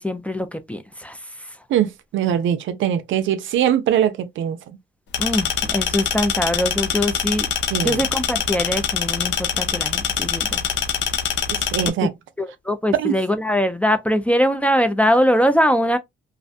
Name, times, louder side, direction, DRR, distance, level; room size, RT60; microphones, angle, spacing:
voice 1, 0.0-1.5 5.2-7.5 7.8-10.7 12.4-16.0, equal, 5° left, 0.4 m, -22 dB
voice 2, 1.7-4.6 7.7-8.0 11.5-12.1 12.9-13.1, right 10 dB, 75° right, 0.5 m, -21 dB
sound 1, 5.1-11.9, left 8 dB, 65° left, 0.5 m, -24 dB
2.5 x 2.1 x 2.5 m
cardioid pair, 90°, 20 cm